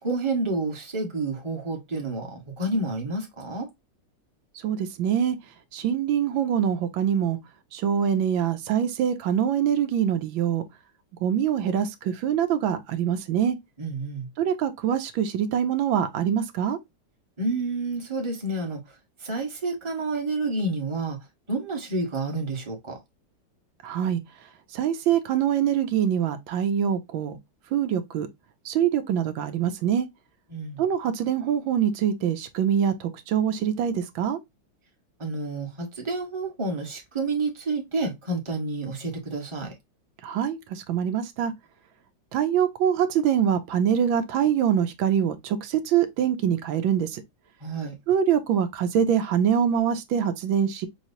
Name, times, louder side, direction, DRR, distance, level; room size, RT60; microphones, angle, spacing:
voice 1, 0.0-3.7 13.8-14.3 17.4-18.8 19.2-21.2 21.5-23.0 30.5-30.8 35.2-39.7 47.6-47.9, right 2 dB, 15° right, 1.2 m, -29 dB
voice 2, 4.6-5.4 5.7-7.4 7.7-10.6 11.2-13.6 14.4-16.8 23.8-24.2 24.7-27.4 27.7-28.3 28.6-30.1 30.8-34.4 40.2-41.5 42.3-47.2 48.1-50.9, right 9 dB, 85° right, 1.5 m, -24 dB
5.6 x 3.1 x 2.6 m
omnidirectional pair, 2.1 m